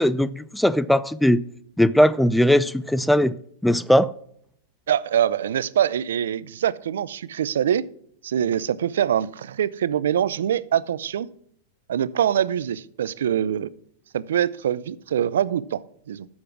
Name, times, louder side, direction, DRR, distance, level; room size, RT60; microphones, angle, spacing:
voice 1, 0.0-1.4 1.8-3.3 3.6-4.1, equal, ahead, 0.4 m, -19 dB
voice 2, 4.9-7.9 8.2-11.3 11.9-13.7 14.1-16.3, right 9 dB, 80° right, 0.5 m, -24 dB
9.7 x 7.3 x 6.1 m
hypercardioid pair, 125°, 0 cm